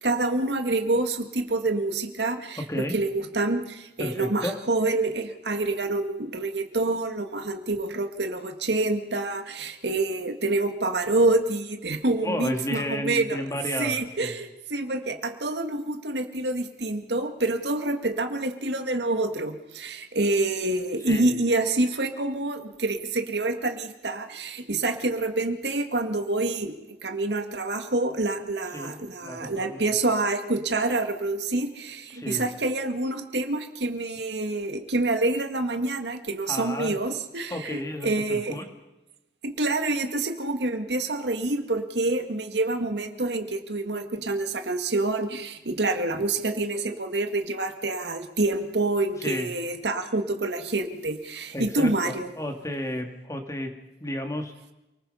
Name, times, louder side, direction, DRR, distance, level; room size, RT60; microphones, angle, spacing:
voice 1, 0.0-13.4 13.8-38.6 39.4-52.3, right 2 dB, 80° right, 7 dB, 1.9 m, -27 dB
voice 2, 2.6-3.0 4.0-4.6 12.2-14.3 21.1-21.3 28.7-29.8 32.1-32.5 36.4-37.0 37.5-38.7 49.2-49.5 51.5-53.7 54.0-54.5, left 1 dB, 20° left, 4 dB, 2.4 m, -32 dB
28.5 x 19.5 x 5.6 m, 0.98 s
head